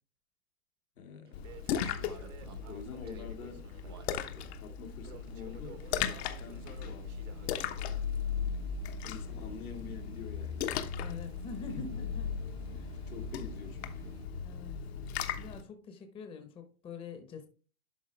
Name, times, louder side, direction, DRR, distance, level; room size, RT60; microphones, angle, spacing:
voice 1, 1.0-1.8 2.6-3.7 4.2-7.2 8.8-10.9 11.7-12.0 13.1-14.2, left 6 dB, 80° left, 2.1 m, -47 dB
Splash splatter, 1.3-15.6, left 7 dB, 50° left, 1.0 m, -37 dB
sound 1, 1.3-14.3, right 5 dB, 20° right, 0.3 m, -53 dB
Crackle, 1.4-8.4, right 10 dB, 60° right, 1.1 m, -55 dB
voice 2, 11.0-12.3 12.7-13.1 14.4-14.9 15.4-17.5, left 4 dB, 10° left, 0.9 m, -45 dB
11.5 x 4.3 x 3.2 m
hypercardioid pair, 140°, 43 cm